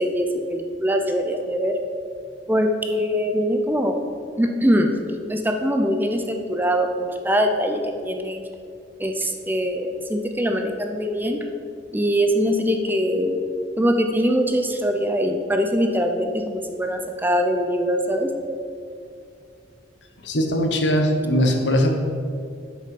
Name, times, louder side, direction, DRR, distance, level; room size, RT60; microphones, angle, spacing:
voice 1, 0.0-1.7 2.5-4.0 4.4-4.9 5.3-8.4 9.0-11.4 11.9-13.4 13.8-18.3, equal, 10° right, 4 dB, 0.5 m, -22 dB
voice 2, 20.2-22.0, equal, 70° left, 3 dB, 1.2 m, -20 dB
8.0 x 6.7 x 5.3 m, 2.3 s
head